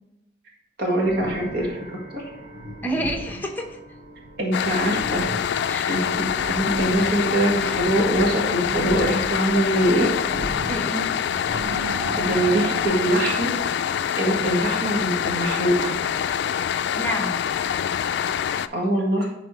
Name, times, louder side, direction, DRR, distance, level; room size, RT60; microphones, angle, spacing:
voice 1, 0.8-1.7 2.1-2.2 4.4-5.3 5.9-10.1 12.2-13.5 14.2-15.9 18.7-19.3, right 1 dB, 60° right, -1 dB, 1.7 m, -23 dB
sound 1, 1.0-12.8, right 1 dB, 40° right, 1.0 m, -36 dB
voice 2, 2.8-3.8 5.7-6.1 10.6-11.1 16.9-17.4, equal, 10° left, 3 dB, 0.8 m, -29 dB
sound 2, 4.5-18.7, left 8 dB, 65° left, 0.3 m, -25 dB
10.5 x 4.1 x 3.2 m, 0.94 s
head